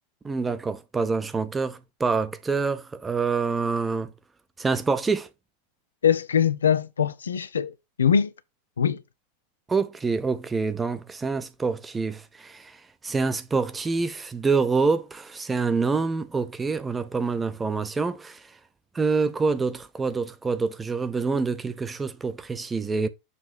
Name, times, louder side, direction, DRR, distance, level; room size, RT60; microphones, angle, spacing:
voice 1, 0.2-4.1 4.6-5.3 9.7-12.7 13.0-18.4 18.9-23.1, right 4 dB, 15° right, 0.8 m, -26 dB
voice 2, 6.0-8.3 8.8-9.0, left 8 dB, 75° left, 0.5 m, -23 dB
6.9 x 3.1 x 5.1 m
figure-of-eight pair, 85°, 0 cm